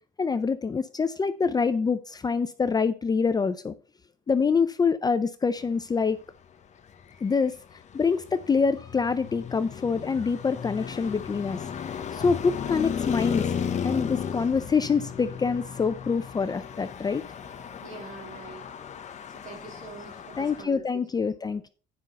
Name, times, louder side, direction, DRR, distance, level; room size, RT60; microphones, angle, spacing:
voice 1, 0.2-3.7 4.3-6.2 7.2-7.5 7.9-11.6 12.1-13.5 13.8-17.2 20.4-21.7, left 5 dB, 25° left, 0.5 m, -25 dB
Traffic noise roadway noise, 6.9-20.6, left 7 dB, 45° left, 1.1 m, -35 dB
voice 2, 17.8-18.7 19.3-20.8, right 4 dB, 50° right, 3.8 m, -44 dB
9.7 x 5.5 x 4.3 m
cardioid pair, 110°, 17 cm